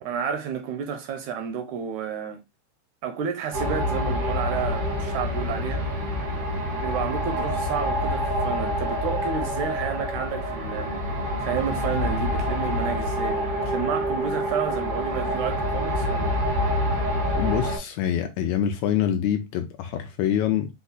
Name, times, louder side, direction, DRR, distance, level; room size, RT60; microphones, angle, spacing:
voice 1, 0.0-2.4 3.0-5.9 6.8-10.9 11.4-16.4 16.7-16.8, right 7 dB, 80° right, 1.8 m, -31 dB
sound 1, 3.5-17.8, equal, 55° right, 0.8 m, -27 dB
voice 2, 17.3-20.7, left 10 dB, 80° left, 1.6 m, -25 dB
5.6 x 2.3 x 4.0 m
omnidirectional pair, 3.7 m